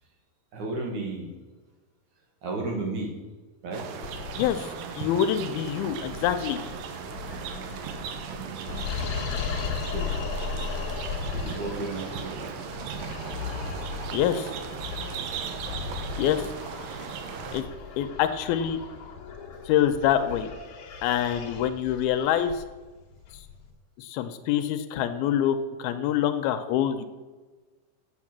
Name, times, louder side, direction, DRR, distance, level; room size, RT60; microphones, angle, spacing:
voice 1, 0.5-1.3 2.4-3.1 3.6-3.8 9.8-10.1 11.3-12.5 17.6-17.7, right 2 dB, 55° right, 0 dB, 2.9 m, -33 dB
sound 1, 3.7-17.6, right 7 dB, 70° right, 2.3 m, -37 dB
sound 2, 4.0-23.7, left 6 dB, 55° left, 1.8 m, -37 dB
voice 2, 4.4-4.7 5.0-6.6 14.1-14.5 16.2-16.5 17.5-17.7 18.0-18.8 19.7-20.5 21.0-22.5 24.0-27.1, left 10 dB, 85° left, 9 dB, 2.5 m, -25 dB
8.6 x 7.9 x 7.4 m, 1.3 s
omnidirectional pair, 4.5 m